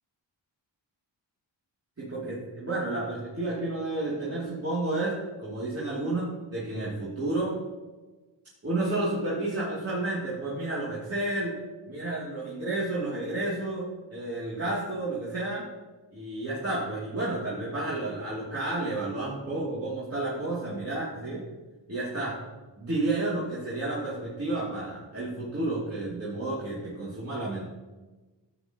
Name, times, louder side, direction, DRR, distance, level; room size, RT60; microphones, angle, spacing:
voice 1, 2.0-7.5 8.6-11.6 11.9-15.6 16.1-21.4 21.9-22.4 22.8-27.6, right 2 dB, 30° right, -9 dB, 2.8 m, -31 dB
12.0 x 9.0 x 3.0 m, 1.2 s
wide cardioid pair, 110°, 45 cm